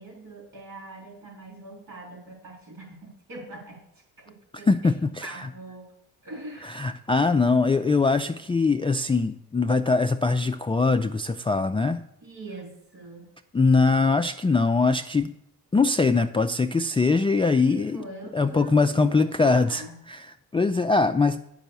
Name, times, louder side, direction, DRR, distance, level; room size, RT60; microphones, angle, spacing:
voice 1, 0.0-5.9 6.2-6.9 12.2-13.3 17.7-20.0, right 2 dB, 55° right, 2 dB, 3.6 m, -42 dB
voice 2, 4.7-5.5 6.6-12.0 13.5-15.3 15.7-18.0 18.3-21.4, left 4 dB, 15° left, 9 dB, 0.3 m, -22 dB
9.0 x 5.5 x 6.8 m, 0.75 s
cardioid pair, 75°, 41 cm